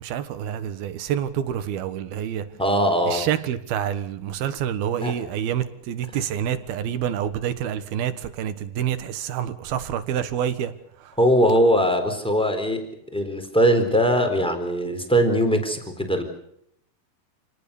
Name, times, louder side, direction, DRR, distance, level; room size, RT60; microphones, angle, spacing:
voice 1, 0.0-2.5 3.1-10.7 11.0-11.1, right 10 dB, 75° right, 3.2 m, -27 dB
voice 2, 2.6-3.2 5.0-5.2 11.2-12.9 13.1-16.2, equal, ahead, 3.4 m, -21 dB
28.5 x 19.0 x 7.0 m
omnidirectional pair, 4.5 m